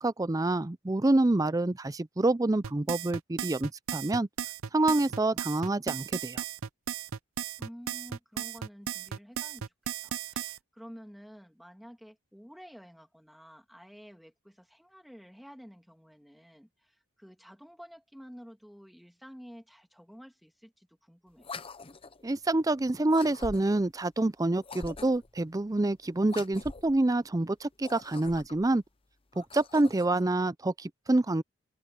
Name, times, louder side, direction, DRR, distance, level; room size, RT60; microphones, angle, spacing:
voice 1, 0.0-4.3 4.7-6.4 22.2-28.8 29.4-31.4, right 2 dB, 15° right, 0.4 m, -27 dB
sound 1, 2.6-10.6, right 9 dB, 75° right, 0.6 m, -35 dB
voice 2, 7.6-9.7 10.0-21.5, equal, ahead, 2.7 m, -51 dB
sound 2, 21.4-22.2 23.1-23.9 24.6-25.4 26.2-27.0 27.7-28.7 29.3-30.2, left 3 dB, 25° left, 0.7 m, -44 dB
head